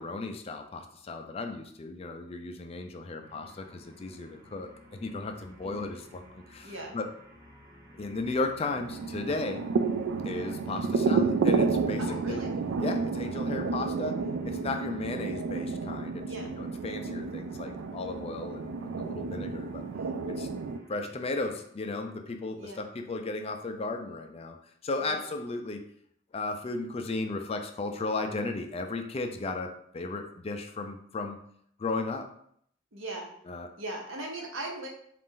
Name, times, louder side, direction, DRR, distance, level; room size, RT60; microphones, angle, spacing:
voice 1, 0.0-7.1 7.9-9.6 10.2-12.5 12.8-19.8 20.3-20.5 20.9-24.6 24.8-25.8 26.3-31.4 31.8-32.3 33.5-33.7, left 3 dB, 30° left, 5 dB, 0.4 m, -35 dB
sound 1, 3.2-21.7, equal, 20° right, 0.7 m, -55 dB
voice 2, 6.6-7.0 12.0-12.5 16.3-16.5 22.6-22.8 25.0-25.2 32.9-33.3 33.8-34.9, right 2 dB, 90° right, 1 dB, 1.0 m, -38 dB
sound 2, 8.7-20.8, right 4 dB, 70° right, 0.3 m, -31 dB
4.1 x 2.5 x 3.7 m, 0.67 s
head